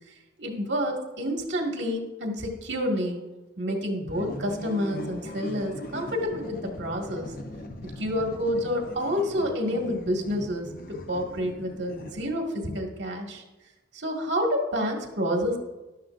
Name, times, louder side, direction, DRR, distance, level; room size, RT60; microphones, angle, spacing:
voice 1, 0.4-3.3 3.6-7.3 7.8-13.4 13.9-15.6, equal, 80° right, 0 dB, 2.0 m, -29 dB
sound 1, 4.1-12.6, left 1 dB, 55° left, 0.9 m, -40 dB
13.5 x 11.5 x 2.6 m, 1.1 s
head